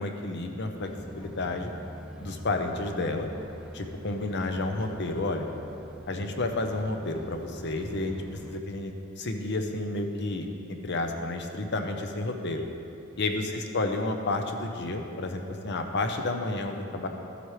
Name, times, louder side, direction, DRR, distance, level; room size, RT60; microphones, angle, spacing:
voice 1, 0.0-1.7 2.2-3.3 3.7-5.5 6.1-12.6 13.2-17.1, left 2 dB, 55° left, 5 dB, 0.7 m, -31 dB
sound 1, 0.8-8.6, equal, 5° right, 0.4 m, -45 dB
13.5 x 7.9 x 3.2 m, 2.8 s
head